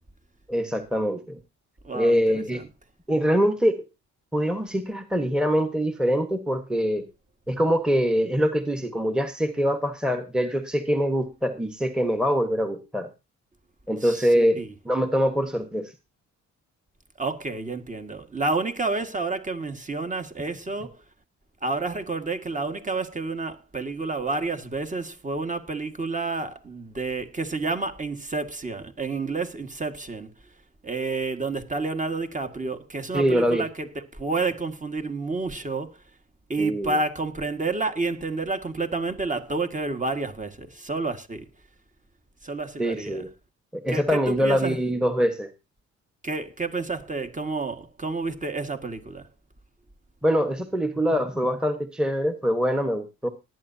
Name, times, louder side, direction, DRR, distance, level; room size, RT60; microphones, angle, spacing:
voice 1, 0.5-1.4 1.9-2.6 3.1-3.8 4.3-7.1 7.5-13.1 13.9-15.9 33.1-33.7 36.6-37.0 42.8-43.3 43.7-45.5 50.2-53.3, equal, 5° right, 1.4 m, -24 dB
voice 2, 1.8-2.2 2.5-2.6 14.0-14.7 17.2-21.0 21.6-30.3 30.8-36.0 36.5-41.5 42.4-43.2 43.9-44.8 46.2-49.3, right 3 dB, 25° right, 1.9 m, -29 dB
19.0 x 9.3 x 2.8 m
cardioid pair, 90°, 30 cm